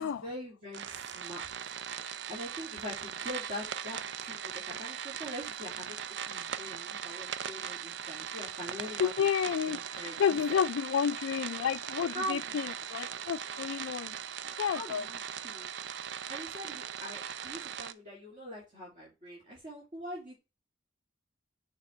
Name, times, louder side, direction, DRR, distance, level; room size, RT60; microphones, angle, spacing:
voice 1, 0.0-1.7 2.3-6.0 6.3-9.3 9.6-10.6 12.1-12.9 14.7-15.7 16.3-20.4, equal, 40° right, 2.5 m, -43 dB
sound 1, 0.7-17.9, right 8 dB, 60° right, 0.5 m, -39 dB
voice 2, 9.0-12.6 12.9-14.1 14.6-15.1, left 7 dB, 75° left, 0.3 m, -30 dB
6.6 x 3.5 x 4.9 m
head